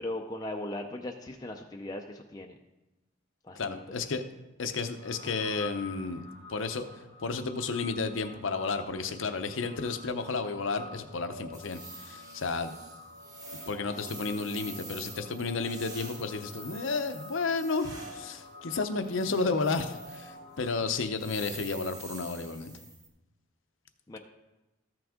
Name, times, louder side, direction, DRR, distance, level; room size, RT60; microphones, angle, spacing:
voice 1, 0.0-2.6 3.4-3.8 20.9-21.0 24.1-24.2, left 1 dB, 20° left, 2 dB, 0.5 m, -38 dB
voice 2, 3.6-4.2 4.6-6.2 6.5-6.9 7.2-12.8 13.7-22.7, left 4 dB, 70° left, 9 dB, 0.7 m, -32 dB
sound 1, 4.9-20.7, left 2 dB, 70° right, 2.1 m, -48 dB
sound 2, 11.5-18.3 19.0-20.3 20.6-20.8 21.2-23.1, right 3 dB, 20° right, 1.2 m, -47 dB
14.0 x 6.0 x 3.7 m, 1.0 s
head